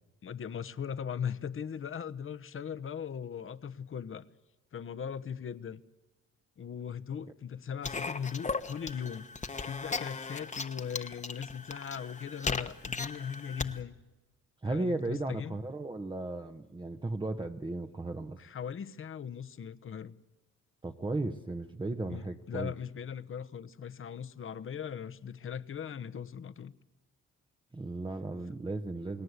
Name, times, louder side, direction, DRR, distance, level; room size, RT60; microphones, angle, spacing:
voice 1, 0.2-4.2 4.7-5.8 6.6-9.3 9.6-14.0 14.7-15.6 18.4-20.1 22.1-26.7, left 7 dB, 45° left, 1.1 m, -39 dB
sound 1, 7.8-13.8, left 4 dB, 25° left, 1.3 m, -37 dB
voice 2, 14.6-18.4 20.8-22.7 27.7-29.2, right 2 dB, 15° right, 1.0 m, -35 dB
29.5 x 18.0 x 8.2 m
cardioid pair, 90°, 30 cm